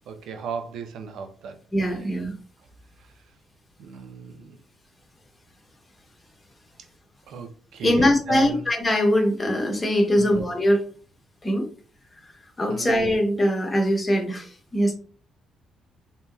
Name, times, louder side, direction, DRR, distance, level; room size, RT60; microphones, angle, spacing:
voice 1, 0.1-1.6 3.8-4.6 7.3-8.6 10.2-10.4 12.7-13.0, right 5 dB, 80° right, 0.5 m, -35 dB
voice 2, 1.7-2.3 7.8-10.8 11.4-11.7 12.6-14.9, equal, 20° left, 0.9 m, -22 dB
2.8 x 2.8 x 2.3 m
cardioid pair, 90°, 0 cm